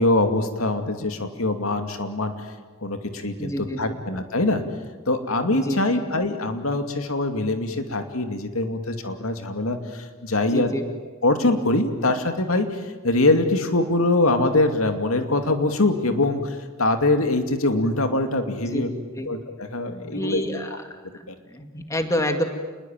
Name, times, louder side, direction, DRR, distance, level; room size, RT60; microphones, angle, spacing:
voice 1, 0.0-2.3 2.8-4.6 5.1-10.7 11.2-12.8 13.0-18.9 19.3-20.4 21.3-21.4, left 2 dB, 80° left, 6 dB, 2.5 m, -23 dB
voice 2, 3.4-4.0 5.5-6.0 10.4-10.8 18.6-18.8 19.1-19.3 20.1-20.8 21.1-22.4, equal, 15° left, 5 dB, 2.1 m, -28 dB
28.0 x 21.5 x 9.1 m, 1.3 s
head